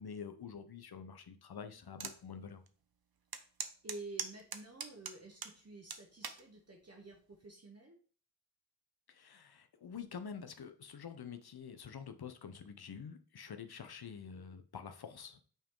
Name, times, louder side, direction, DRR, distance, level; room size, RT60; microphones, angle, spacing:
voice 1, 0.0-2.6 9.1-15.4, left 6 dB, 90° left, 9 dB, 0.7 m, -47 dB
sound 1, 2.0-2.2 2.7-2.8 3.3-5.6 5.9-6.4 7.1-7.4, right 6 dB, 75° right, 0.7 m, -41 dB
voice 2, 3.8-8.0, right 2 dB, 45° right, 1 dB, 1.0 m, -50 dB
5.7 x 4.6 x 3.7 m, 0.43 s
wide cardioid pair, 75°, 37 cm